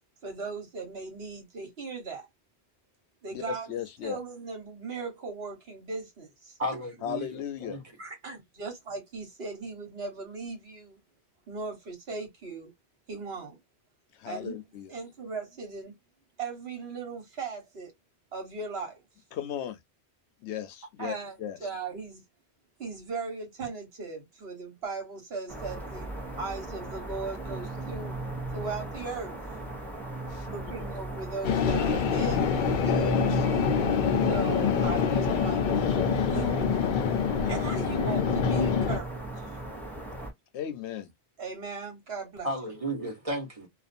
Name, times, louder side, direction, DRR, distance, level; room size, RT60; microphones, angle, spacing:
voice 1, 0.2-2.3 3.2-6.6 8.0-11.0 11.5-12.7 13.1-13.6 14.2-14.5 14.9-15.9 16.4-17.9 18.3-19.0 21.0-22.2 22.8-26.1 26.4-28.1 28.5-29.4 30.5-32.5 34.2-35.6 36.2-36.8 37.4-39.4 41.4-42.8, right 4 dB, 65° right, 1.4 m, -38 dB
voice 2, 3.3-4.2 7.0-7.8 14.2-14.9 19.3-19.8 20.4-21.1 21.4-21.6 30.3-30.5 30.8-30.9 32.8-33.5 40.5-41.1, left 9 dB, 85° left, 0.9 m, -35 dB
voice 3, 6.6-7.8 42.4-43.7, right 1 dB, 35° right, 1.1 m, -34 dB
sound 1, 25.5-40.3, right 2 dB, ahead, 0.7 m, -36 dB
sound 2, 31.4-39.0, left 6 dB, 60° left, 0.6 m, -26 dB
2.5 x 2.4 x 2.5 m
omnidirectional pair, 1.1 m